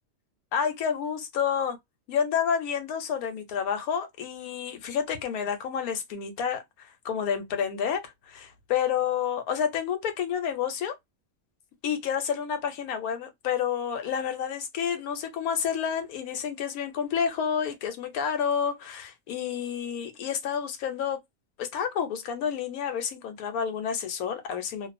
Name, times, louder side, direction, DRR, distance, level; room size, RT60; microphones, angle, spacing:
voice 1, 0.5-1.8 2.1-10.9 11.8-21.2 21.6-24.9, left 7 dB, 85° left, 1.1 m, -29 dB
2.4 x 2.3 x 2.5 m
omnidirectional pair, 1.5 m